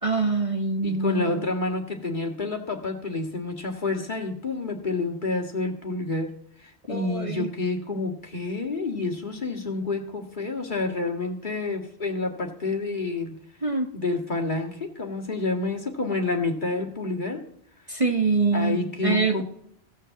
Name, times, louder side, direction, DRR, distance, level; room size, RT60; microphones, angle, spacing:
voice 1, 0.0-1.4 6.9-7.5 13.6-13.9 17.9-19.4, right 4 dB, 30° right, 3 dB, 1.2 m, -25 dB
voice 2, 0.8-6.3 6.6-13.3 13.9-17.4 18.5-19.4, left 3 dB, 45° left, 2 dB, 2.1 m, -29 dB
16.0 x 6.5 x 7.5 m, 0.70 s
omnidirectional pair, 1.2 m